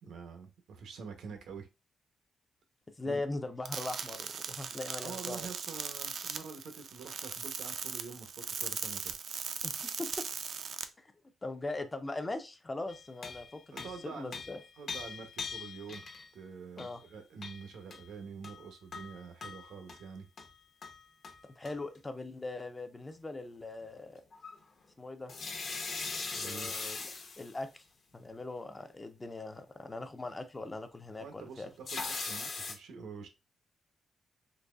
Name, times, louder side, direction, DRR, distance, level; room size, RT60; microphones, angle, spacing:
voice 1, 0.0-1.7 3.0-3.2 5.0-9.2 13.7-14.4 14.8-16.1 16.3-20.3 26.3-26.7 31.2-33.3, right 5 dB, 85° right, 0.8 m, -46 dB
voice 2, 3.0-5.5 9.6-10.3 11.0-11.1 11.4-14.6 16.8-17.0 21.6-24.2 25.0-25.3 26.4-27.0 27.4-27.8 28.1-31.7, left 2 dB, 20° left, 0.4 m, -40 dB
sound 1, 3.7-10.8, right 6 dB, 60° right, 0.4 m, -39 dB
sound 2, 12.9-16.3 16.8-17.0 17.4-18.1 18.4-20.0 20.4-20.5 20.8-21.4 21.7-21.8 24.3-24.6 25.3-27.5 31.9-32.7, left 4 dB, 50° left, 0.8 m, -40 dB
3.9 x 3.0 x 2.3 m
wide cardioid pair, 155°, 0 cm